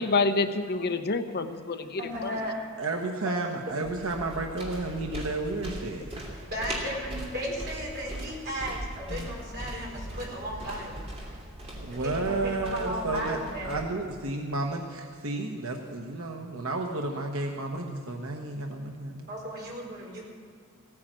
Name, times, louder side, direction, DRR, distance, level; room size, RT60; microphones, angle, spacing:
voice 1, 0.0-2.3 9.1-9.3, left 3 dB, 50° left, 8 dB, 0.8 m, -28 dB
voice 2, 2.0-2.6 6.5-11.0 12.0-13.8 19.3-20.2, equal, 50° right, -3 dB, 4.5 m, -35 dB
voice 3, 2.8-6.1 11.8-13.4 13.6-19.3, right 2 dB, 75° right, 2 dB, 1.2 m, -32 dB
sound 1, 3.8-13.8, right 1 dB, 30° right, 2.9 m, -40 dB
16.5 x 9.6 x 7.5 m, 2.2 s
head